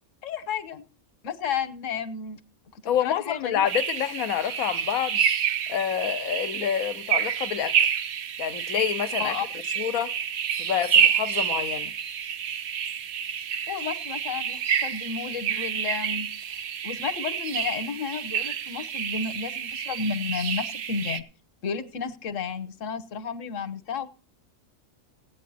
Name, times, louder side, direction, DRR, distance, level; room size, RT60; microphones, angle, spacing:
voice 1, 0.2-0.8 1.2-2.4 2.7-3.7 9.2-9.5 13.7-21.2 21.6-24.1, left 6 dB, 65° left, 1.3 m, -32 dB
voice 2, 2.8-5.2 5.7-7.9 8.4-9.4 9.8-10.1 10.5-11.9, left 9 dB, 80° left, 1.2 m, -28 dB
sound 1, 3.7-21.2, right 8 dB, 65° right, 1.1 m, -28 dB
16.0 x 9.2 x 4.1 m
omnidirectional pair, 1.5 m